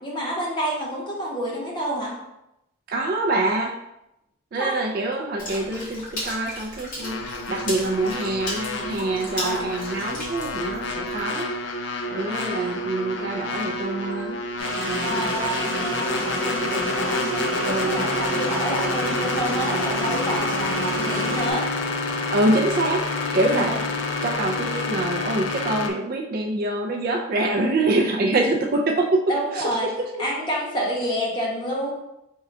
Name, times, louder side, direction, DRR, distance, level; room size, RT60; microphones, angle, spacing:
voice 1, 0.0-2.2 4.6-4.8 9.4-9.7 12.3-12.7 15.0-21.7 23.5-23.7 29.3-29.9 30.2-31.9, equal, 20° left, -5 dB, 1.0 m, -29 dB
voice 2, 2.9-3.8 4.5-11.5 12.1-14.4 14.9-15.3 17.6-18.1 22.3-23.1 23.3-23.7 24.2-29.2 29.5-30.1, right 2 dB, 45° right, 2 dB, 0.3 m, -25 dB
Water / Splash splatter, 5.4-11.2, left 1 dB, 40° left, 1.2 m, -35 dB
sound 1, 7.0-25.9, left 3 dB, 55° left, 0.4 m, -28 dB
sound 2, 14.6-21.5, right 2 dB, 60° right, 1.1 m, -30 dB
3.6 x 2.2 x 4.4 m, 0.88 s
head